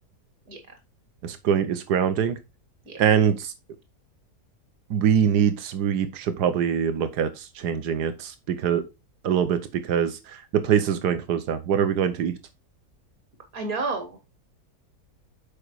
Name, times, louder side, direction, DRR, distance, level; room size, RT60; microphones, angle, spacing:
voice 1, 1.2-2.4 3.0-3.5 4.9-8.8 9.2-12.3, right 8 dB, 90° right, 1.5 m, -23 dB
voice 2, 13.5-14.2, right 3 dB, 60° right, 2.6 m, -30 dB
6.9 x 5.0 x 4.6 m
omnidirectional pair, 1.7 m